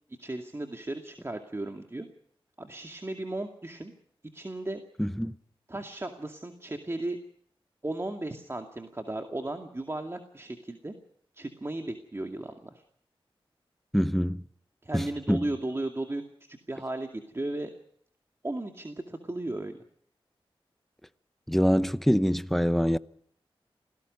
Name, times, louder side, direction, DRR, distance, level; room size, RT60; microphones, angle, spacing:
voice 1, 0.2-2.1 2.6-3.9 4.3-4.8 5.7-7.2 7.8-10.9 11.4-12.8 14.8-16.2 16.7-17.7 18.4-19.7, right 2 dB, 25° right, 2.3 m, -35 dB
voice 2, 5.0-5.3 13.9-14.4 14.9-15.5 21.5-23.0, equal, 5° left, 0.9 m, -25 dB
28.5 x 18.5 x 5.4 m
wide cardioid pair, 65°, 10 cm